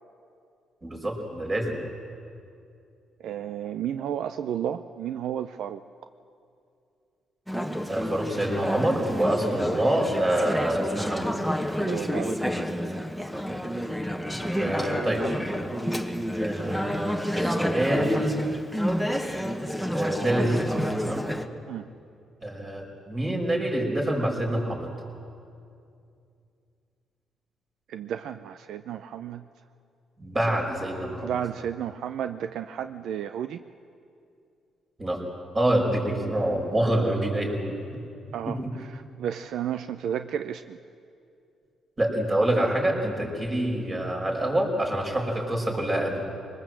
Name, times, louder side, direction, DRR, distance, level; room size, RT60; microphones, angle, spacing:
voice 1, 0.8-1.8 7.9-11.3 14.3-15.2 16.4-18.4 19.9-21.2 22.4-24.9 30.2-31.4 35.0-35.2 35.5-37.8 38.5-38.7 42.0-46.2, right 1 dB, 30° right, 0 dB, 5.5 m, -26 dB
voice 2, 3.2-5.8 11.8-12.4 14.6-15.0 21.7-21.9 27.9-29.4 31.2-33.6 38.3-40.8, right 9 dB, 75° right, 10 dB, 0.5 m, -32 dB
Conversation / Chatter, 7.5-21.4, equal, ahead, 1.3 m, -29 dB
22.5 x 20.0 x 7.7 m, 2.5 s
cardioid pair, 90°, 0 cm